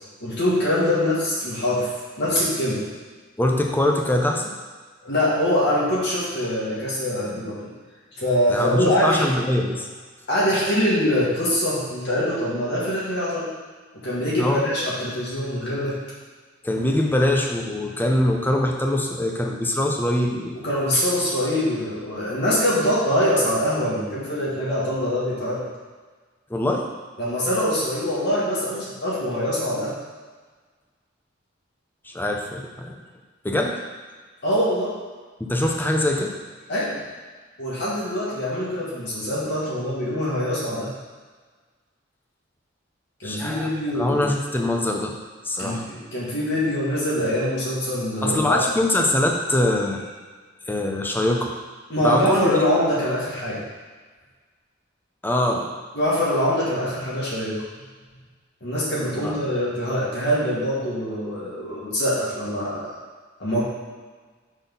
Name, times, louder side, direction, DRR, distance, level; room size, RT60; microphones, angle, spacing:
voice 1, 0.2-1.9 2.2-2.9 5.1-7.7 8.2-9.3 10.3-13.5 13.9-16.0 20.6-25.6 27.2-29.9 34.4-34.9 36.7-37.0 37.6-40.9 43.2-44.2 45.6-48.6 51.9-53.6 55.9-57.6 58.6-63.0 63.4-63.6, left 1 dB, 60° left, -7 dB, 1.8 m, -24 dB
voice 2, 3.4-4.6 8.5-9.9 14.4-14.6 16.6-20.6 26.5-26.9 32.0-33.0 33.4-33.7 35.4-36.3 43.2-43.7 43.9-45.1 45.4-45.9 48.2-50.1 50.7-51.5 52.0-52.6 55.2-55.7 59.2-59.4, left 1 dB, 10° left, 1 dB, 0.7 m, -23 dB
6.1 x 4.1 x 5.4 m, 1.4 s
head